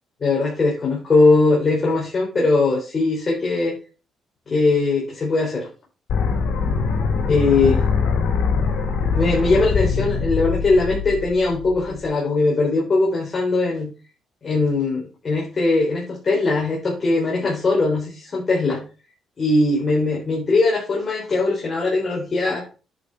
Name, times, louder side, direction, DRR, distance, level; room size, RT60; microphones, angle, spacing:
voice 1, 0.2-3.8 4.5-5.7 7.3-7.8 9.1-13.9 14.4-18.9 19.4-22.7, left 3 dB, 40° left, -3 dB, 4.2 m, -20 dB
sound 1, 6.1-12.1, left 5 dB, 80° left, 3.7 m, -23 dB
10.0 x 6.2 x 4.5 m, 0.34 s
cardioid pair, 90°, 0 cm